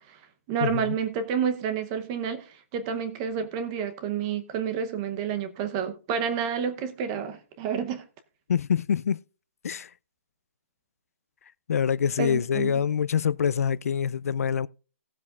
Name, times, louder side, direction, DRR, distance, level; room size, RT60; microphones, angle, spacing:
voice 1, 0.5-8.0 12.2-12.7, right 7 dB, 20° right, 0.8 m, -29 dB
voice 2, 8.5-9.2 9.6-9.9 11.7-14.7, left 7 dB, 75° left, 0.4 m, -25 dB
18.0 x 7.5 x 2.4 m
hypercardioid pair, 175°, 8 cm